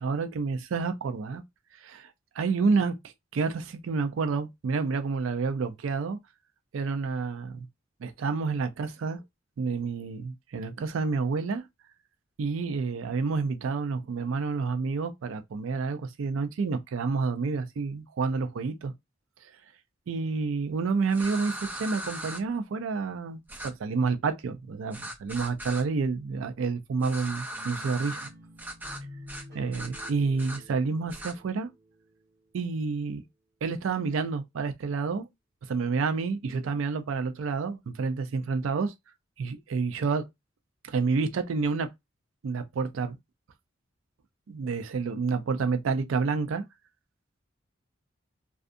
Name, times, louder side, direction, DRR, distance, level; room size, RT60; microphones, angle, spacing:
voice 1, 0.0-1.4 1.8-2.1 2.4-6.2 6.7-7.6 8.0-9.2 9.6-11.6 12.4-18.9 20.1-23.4 23.8-28.3 29.5-31.7 32.5-33.2 33.6-35.3 35.7-38.9 39.4-40.3 40.8-41.9 42.4-43.2 44.5-46.6, right 4 dB, 80° right, 0.4 m, -29 dB
sound 1, 21.1-22.4 23.5-23.7 24.9-25.8 27.0-28.3 28.6-29.0 29.3-29.5 29.7-30.6 31.1-31.3, right 1 dB, 10° right, 0.4 m, -38 dB
sound 2, 27.5-32.6, equal, 55° right, 1.4 m, -49 dB
2.5 x 2.4 x 2.4 m
head